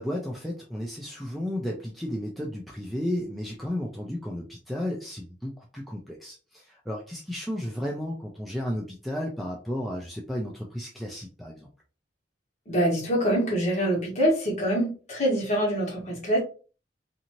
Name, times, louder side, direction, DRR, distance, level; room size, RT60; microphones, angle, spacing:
voice 1, 0.0-11.7, left 1 dB, ahead, -2 dB, 0.4 m, -33 dB
voice 2, 12.7-16.4, equal, 40° left, -2 dB, 1.2 m, -25 dB
2.6 x 2.5 x 2.9 m, 0.36 s
head